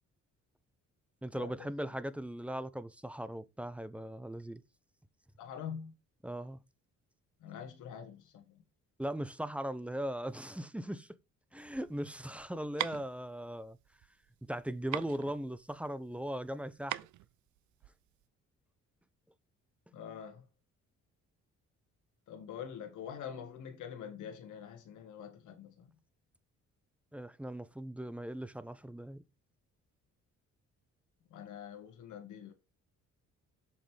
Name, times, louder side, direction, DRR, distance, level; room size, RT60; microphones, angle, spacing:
voice 1, 1.2-4.6 6.2-6.6 9.0-11.1 11.5-13.8 14.5-17.0 27.1-29.2, right 1 dB, 5° right, 0.6 m, -39 dB
voice 2, 5.4-5.9 7.4-8.4 19.9-20.4 22.3-25.9 31.3-32.5, left 8 dB, 80° left, 1.6 m, -45 dB
sound 1, 11.6-18.2, right 15 dB, 75° right, 0.5 m, -42 dB
7.3 x 5.2 x 3.4 m
cardioid pair, 90°, 30 cm